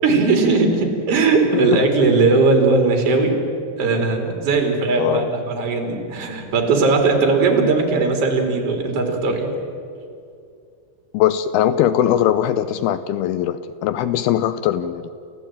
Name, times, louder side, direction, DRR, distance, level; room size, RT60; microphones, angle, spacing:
voice 1, 0.0-3.4 3.8-9.5, right 3 dB, 40° right, 3 dB, 3.7 m, -18 dB
voice 2, 5.0-5.3 11.1-15.1, left 11 dB, 80° left, 13 dB, 2.6 m, -20 dB
29.5 x 14.5 x 8.9 m, 2.4 s
omnidirectional pair, 4.6 m